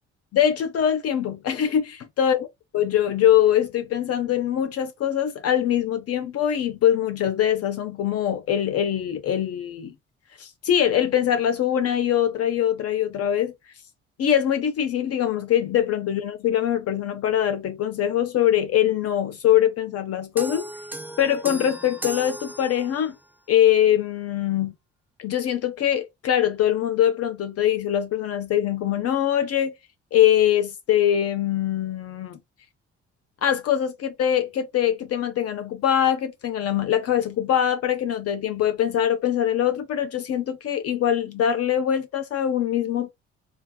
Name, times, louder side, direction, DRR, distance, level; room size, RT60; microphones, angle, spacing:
voice 1, 0.3-2.5 2.7-9.9 10.4-13.5 14.2-20.7 21.2-23.1 23.5-24.7 25.2-29.7 30.1-32.4 33.4-43.1, left 10 dB, 45° left, 0.6 m, -23 dB
sound 1, 20.4-23.2, right 1 dB, 5° right, 0.5 m, -36 dB
3.1 x 2.5 x 2.2 m
hypercardioid pair, 50°, 34 cm